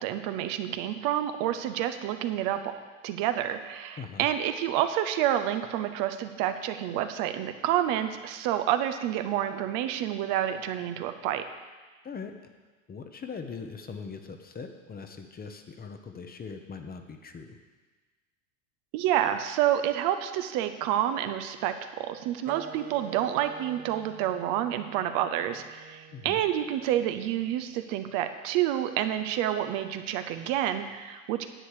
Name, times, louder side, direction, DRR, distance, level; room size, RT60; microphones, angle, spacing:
voice 1, 0.0-2.7 3.0-11.4 18.9-31.5, right 11 dB, 55° right, 8 dB, 0.8 m, -29 dB
voice 2, 12.9-17.6 26.1-26.4, left 5 dB, 25° left, 6 dB, 1.0 m, -41 dB
sound 1, 22.4-27.6, right 8 dB, 20° right, 0.7 m, -48 dB
10.0 x 8.2 x 4.8 m, 1.3 s
hypercardioid pair, 80°, 40 cm